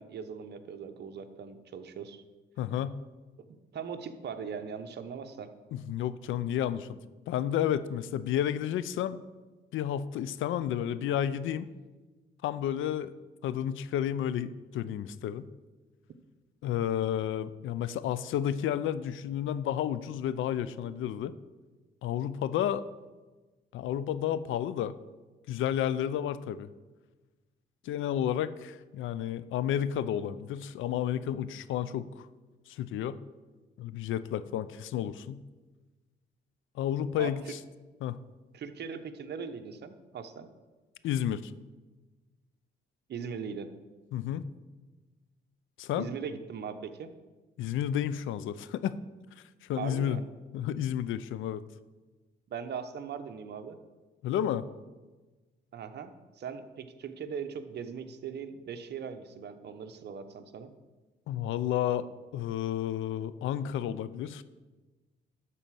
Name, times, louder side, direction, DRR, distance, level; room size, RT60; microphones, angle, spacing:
voice 1, 0.0-2.2 3.4-3.5 3.7-5.5 37.2-37.3 38.5-40.5 43.1-43.7 46.0-47.1 49.8-50.2 52.5-53.8 55.7-56.1 56.4-60.7, right 6 dB, 55° right, 8 dB, 1.0 m, -40 dB
voice 2, 2.6-3.0 5.7-7.0 7.3-9.2 9.7-11.7 12.4-13.1 13.4-15.5 16.6-21.3 22.0-22.8 23.7-24.9 25.5-26.7 27.8-32.3 32.7-33.2 33.8-35.4 36.8-37.6 38.0-38.2 41.0-41.5 44.1-44.4 45.8-46.1 47.6-49.0 49.6-50.2 50.5-51.6 54.2-54.7 61.3-64.4, left 10 dB, 80° left, 15 dB, 0.5 m, -31 dB
12.0 x 4.2 x 7.5 m, 1.3 s
cardioid pair, 90°, 20 cm